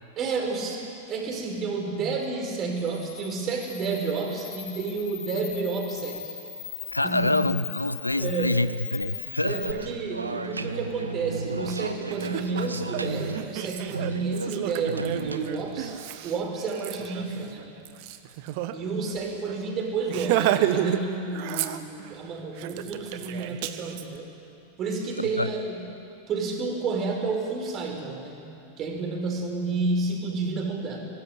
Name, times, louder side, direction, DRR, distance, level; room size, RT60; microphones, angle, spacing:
voice 1, 0.2-0.8 1.1-6.3 7.0-7.6 8.2-8.6 9.4-16.0 16.2-17.7 18.7-24.3 24.8-25.9 26.3-28.5 28.8-31.0, right 4 dB, 30° right, 2 dB, 5.3 m, -30 dB
Camera, 2.7-9.7, left 8 dB, 65° left, 6.8 m, -39 dB
voice 2, 6.9-9.6 25.2-25.5, left 2 dB, 85° left, 14 dB, 0.7 m, -26 dB
sound 1, 9.3-15.9, right 3 dB, 80° right, 1.2 m, -34 dB
Laughter, 11.7-11.8 12.1-18.7 19.1-19.2 19.5-19.7 20.1-21.0 21.3-22.1 22.6-24.0, right 12 dB, 45° right, 1.3 m, -31 dB
25.0 x 19.5 x 10.0 m, 2.6 s
figure-of-eight pair, 90°, 0 cm